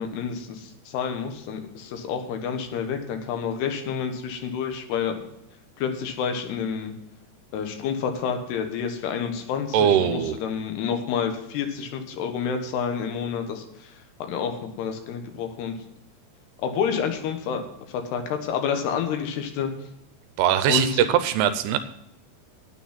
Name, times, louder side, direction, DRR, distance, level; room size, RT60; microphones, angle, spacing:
voice 1, 0.0-5.2 5.8-6.9 7.5-13.9 14.3-15.7 16.6-17.6 17.9-19.7 20.7-21.1, left 7 dB, 75° left, 5 dB, 3.3 m, -29 dB
voice 2, 9.7-10.4 20.4-21.8, right 10 dB, 80° right, 11 dB, 2.7 m, -21 dB
9.4 x 9.3 x 5.7 m, 0.85 s
omnidirectional pair, 4.7 m